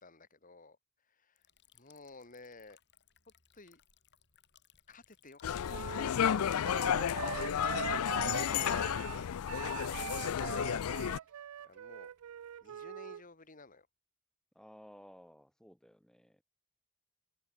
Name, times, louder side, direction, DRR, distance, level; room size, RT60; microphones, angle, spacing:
voice 1, 0.0-1.5 1.7-2.8 3.5-3.8 4.9-6.9 7.4-9.2 11.3-12.1 12.6-13.9, left 3 dB, 40° left, 2.8 m, -56 dB
Liquid, 1.4-13.8, left 8 dB, 55° left, 3.7 m, -70 dB
sound 1, 5.4-11.2, left 9 dB, 85° left, 0.4 m, -32 dB
Wind instrument woodwind instrument, 5.7-13.2, right 9 dB, 85° right, 0.4 m, -42 dB
voice 2, 14.5-16.4, equal, 5° left, 1.9 m, -56 dB
open air
head